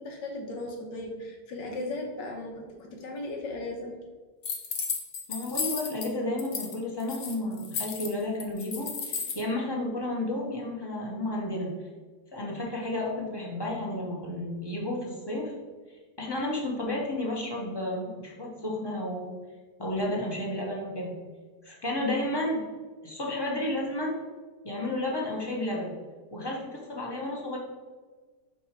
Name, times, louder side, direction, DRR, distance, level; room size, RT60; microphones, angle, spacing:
voice 1, 0.0-4.0, left 2 dB, 85° left, 2 dB, 1.7 m, -37 dB
sound 1, 4.4-6.1 6.4-6.8 7.0-9.4, left 5 dB, 70° left, 1.4 m, -33 dB
voice 2, 5.3-11.7 12.3-15.5 16.2-19.3 19.8-21.1 21.6-22.6 23.0-24.1 24.6-25.9 26.3-27.6, left 1 dB, 20° left, -2 dB, 0.9 m, -32 dB
5.0 x 4.8 x 4.4 m, 1.4 s
omnidirectional pair, 1.9 m